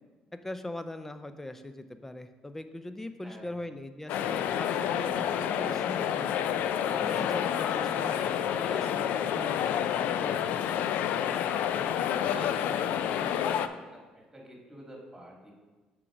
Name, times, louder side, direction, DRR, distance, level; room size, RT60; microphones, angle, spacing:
voice 1, 0.4-6.3 7.0-10.6, left 1 dB, 10° left, 10 dB, 0.5 m, -41 dB
sound 1, 4.1-13.7, left 9 dB, 75° left, 0.3 m, -29 dB
voice 2, 12.0-13.6 13.9-15.5, equal, 15° right, -2 dB, 2.1 m, -46 dB
6.1 x 4.5 x 4.9 m, 1.3 s
supercardioid pair, 80°, 3 cm